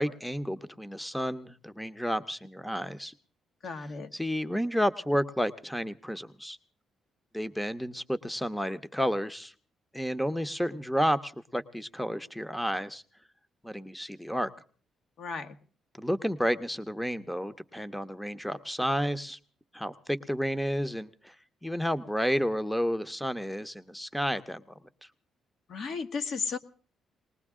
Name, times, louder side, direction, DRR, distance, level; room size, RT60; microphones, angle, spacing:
voice 1, 0.0-3.1 4.1-6.6 7.3-9.5 9.9-13.0 13.6-14.5 16.0-19.4 19.7-21.4 21.6-25.1, equal, 5° left, 13 dB, 0.8 m, -31 dB
voice 2, 3.6-4.1 15.2-15.5 25.7-26.6, left 5 dB, 60° left, 8 dB, 1.5 m, -34 dB
20.5 x 19.0 x 3.7 m, 0.42 s
cardioid pair, 90°, 0 cm